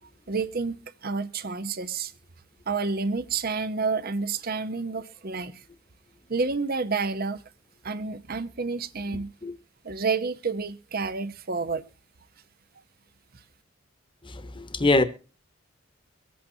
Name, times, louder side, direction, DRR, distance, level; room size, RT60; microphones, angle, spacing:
voice 1, 0.3-0.8 1.0-2.1 2.7-5.6 6.3-7.4 7.8-9.3 9.8-11.8, right 4 dB, 50° right, 0.9 m, -29 dB
voice 2, 14.3-15.0, left 2 dB, 25° left, 1.2 m, -23 dB
24.0 x 8.5 x 2.8 m
head